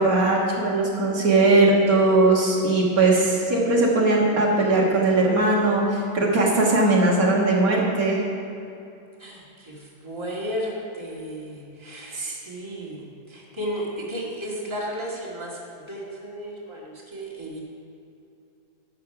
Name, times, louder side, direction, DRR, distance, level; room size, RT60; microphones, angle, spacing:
voice 1, 0.0-8.2 12.1-12.4, right 2 dB, 70° right, -3 dB, 2.1 m, -19 dB
voice 2, 9.2-12.2 12.4-17.6, equal, 20° right, -5 dB, 2.0 m, -34 dB
11.5 x 7.5 x 5.8 m, 2.6 s
omnidirectional pair, 1.6 m